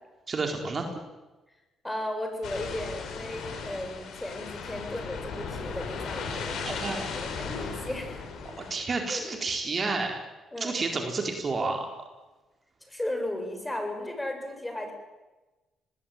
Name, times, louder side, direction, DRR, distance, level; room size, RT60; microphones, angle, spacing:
voice 1, 0.3-0.9 6.3-7.1 8.6-10.2 10.6-11.9, right 3 dB, 40° right, 3 dB, 4.4 m, -30 dB
voice 2, 1.8-8.2 9.1-9.3 10.5-10.8 12.9-14.9, left 1 dB, 10° left, 5 dB, 7.5 m, -35 dB
sound 1, 2.4-8.7, left 5 dB, 75° left, 6.7 m, -36 dB
26.0 x 20.0 x 9.2 m, 1.1 s
cardioid pair, 90°, 0 cm